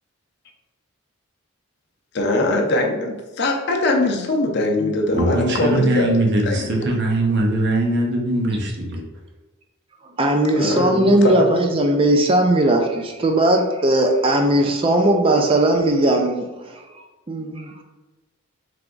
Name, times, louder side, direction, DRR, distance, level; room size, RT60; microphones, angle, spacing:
voice 1, 2.1-6.1 6.5-6.6 10.5-11.4, left 2 dB, 50° left, 2 dB, 0.6 m, -21 dB
voice 2, 5.1-9.0, right 1 dB, 50° right, 0 dB, 0.8 m, -21 dB
voice 3, 10.2-16.4 17.3-17.8, right 1 dB, 25° right, 4 dB, 0.4 m, -18 dB
3.5 x 3.3 x 3.8 m, 1.2 s
head